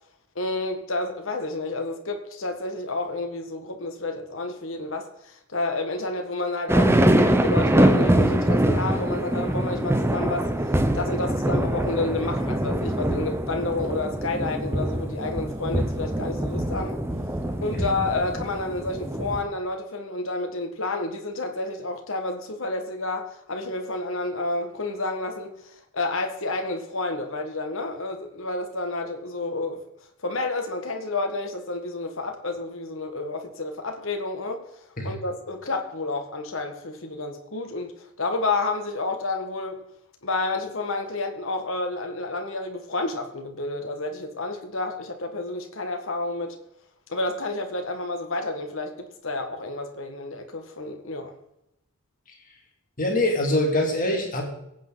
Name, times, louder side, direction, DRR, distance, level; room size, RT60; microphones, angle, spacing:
voice 1, 0.4-10.5 10.9-17.0 17.6-25.5 25.9-29.8 30.2-34.6 35.0-39.8 40.2-46.6 47.1-51.3, left 2 dB, 60° left, 4 dB, 1.8 m, -30 dB
sound 1, 6.7-19.4, right 1 dB, 10° right, 0.8 m, -23 dB
voice 2, 53.0-54.4, left 1 dB, 40° left, 0 dB, 3.0 m, -24 dB
22.5 x 8.9 x 4.1 m, 0.82 s
head